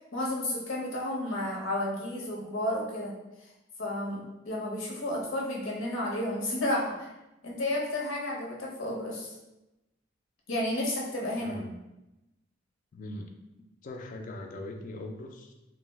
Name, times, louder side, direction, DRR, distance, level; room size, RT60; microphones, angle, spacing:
voice 1, 0.1-3.1 3.8-7.1 7.4-9.3 10.5-11.6, left 1 dB, 75° left, -3 dB, 0.7 m, -32 dB
voice 2, 11.4-11.7 12.9-13.3 13.8-15.5, left 1 dB, 40° left, 3 dB, 0.3 m, -40 dB
2.3 x 2.0 x 3.3 m, 0.96 s
head